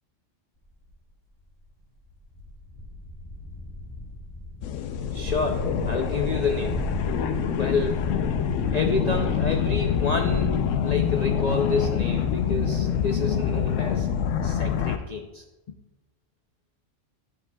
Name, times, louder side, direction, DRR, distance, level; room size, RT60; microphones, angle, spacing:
sound 1, 0.9-1.0 1.6-1.7 2.1-13.1, left 1 dB, 20° left, 2.0 m, -35 dB
sound 2, 4.6-15.0, left 8 dB, 80° left, 0.9 m, -26 dB
voice 1, 5.1-6.8 7.5-8.2 8.7-14.1 14.4-15.4, left 4 dB, 55° left, 3 dB, 0.4 m, -29 dB
11.0 x 7.5 x 2.3 m, 1.1 s
omnidirectional pair, 1.3 m